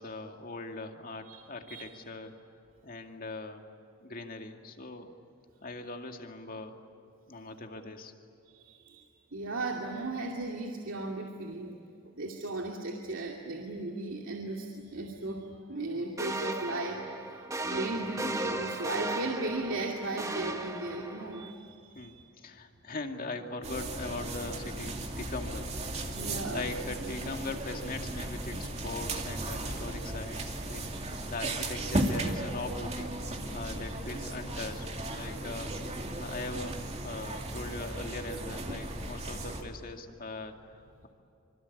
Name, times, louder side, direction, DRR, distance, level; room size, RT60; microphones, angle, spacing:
voice 1, 0.0-2.3 2.8-3.6 4.0-5.1 5.6-6.7 7.3-8.1 21.9-25.7 26.0-33.1 33.5-35.7 36.1-36.7 37.0-41.1, left 2 dB, 45° left, 4 dB, 2.3 m, -40 dB
voice 2, 8.5-9.1 9.3-11.8 12.2-22.2 26.1-26.7 33.5-33.9, right 2 dB, 80° right, 0 dB, 2.5 m, -36 dB
sound 1, 16.2-21.5, right 2 dB, 15° right, 1.6 m, -36 dB
sound 2, 23.6-39.6, right 1 dB, 35° right, 2.5 m, -36 dB
26.0 x 25.5 x 8.5 m, 2.7 s
head